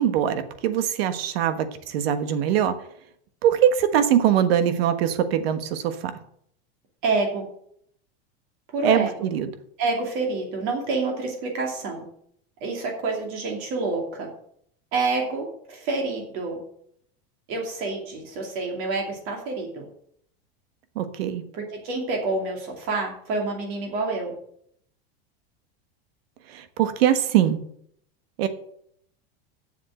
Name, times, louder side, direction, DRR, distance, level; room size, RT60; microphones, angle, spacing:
voice 1, 0.0-2.8 3.4-6.1 8.8-9.5 20.9-21.4 26.5-27.6 28.4-28.5, right 10 dB, 75° right, 10 dB, 1.4 m, -22 dB
voice 2, 7.0-7.5 8.7-9.3 9.8-12.0 12.6-14.3 14.9-16.6 17.5-19.8 21.5-24.3, right 3 dB, 45° right, 2 dB, 2.5 m, -28 dB
7.4 x 7.3 x 7.6 m, 0.67 s
supercardioid pair, 165°, 31 cm